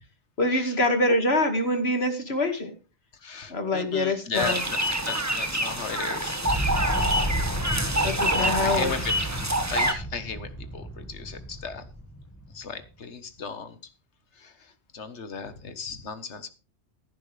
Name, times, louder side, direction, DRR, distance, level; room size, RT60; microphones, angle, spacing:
voice 1, 0.4-2.7 3.5-4.6 8.0-8.9, left 1 dB, 65° left, 2.4 m, -25 dB
voice 2, 3.1-6.5 8.1-9.2 9.7-11.9 12.5-13.9 14.3-16.5, left 5 dB, 85° left, 1.7 m, -36 dB
sound 1, 4.3-9.9, right 1 dB, 15° right, 1.4 m, -26 dB
Boom, 6.4-13.0, equal, 15° left, 1.7 m, -32 dB
15.5 x 10.5 x 3.4 m
omnidirectional pair, 1.1 m